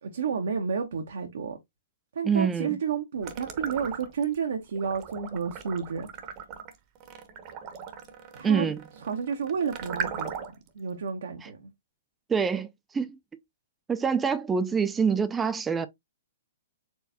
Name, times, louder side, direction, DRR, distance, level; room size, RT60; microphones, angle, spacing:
voice 1, 0.0-1.6 2.1-6.1 8.3-8.7 9.0-10.3 10.7-11.7, right 6 dB, 70° right, 0.8 m, -31 dB
voice 2, 2.2-2.8 8.4-8.8 11.4-11.5 12.3-12.7 12.9-13.2 13.9-15.9, right 6 dB, 15° right, 0.4 m, -25 dB
sound 1, 3.2-4.4 4.8-10.7, right 7 dB, 35° right, 0.9 m, -38 dB
4.6 x 3.2 x 2.7 m
hypercardioid pair, 125°, 0 cm